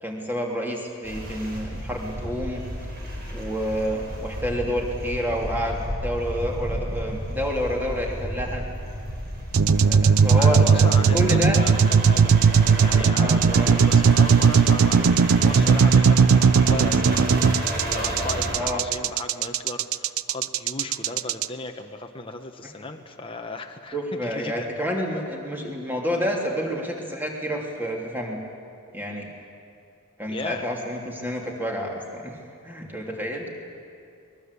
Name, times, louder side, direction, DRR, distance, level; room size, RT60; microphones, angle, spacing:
voice 1, 0.0-2.6 3.3-8.6 9.8-11.6 13.1-13.8 18.5-18.8 23.9-28.4 28.9-29.3 30.2-32.4 32.6-33.5, equal, 10° right, 0 dB, 3.1 m, -29 dB
sound 1, 1.0-18.5, equal, 45° right, 5.8 m, -32 dB
sound 2, 9.5-21.5, right 6 dB, 75° right, 0.5 m, -18 dB
voice 2, 10.3-12.3 12.8-24.7 30.3-30.7, left 3 dB, 25° left, 3 dB, 1.2 m, -36 dB
23.0 x 20.5 x 8.4 m, 2.4 s
head